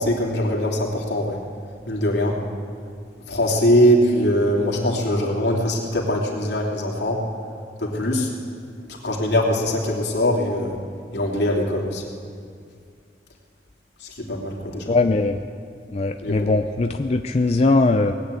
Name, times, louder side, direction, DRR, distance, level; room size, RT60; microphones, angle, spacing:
voice 1, 0.0-1.4 1.9-2.4 3.3-7.2 7.8-8.3 9.0-10.8 11.1-12.1 14.0-14.9 16.2-16.5, equal, 80° left, -1 dB, 2.8 m, -22 dB
voice 2, 14.9-15.4 15.9-18.1, left 3 dB, 35° left, 6 dB, 0.5 m, -20 dB
19.5 x 9.2 x 8.1 m, 2.3 s
head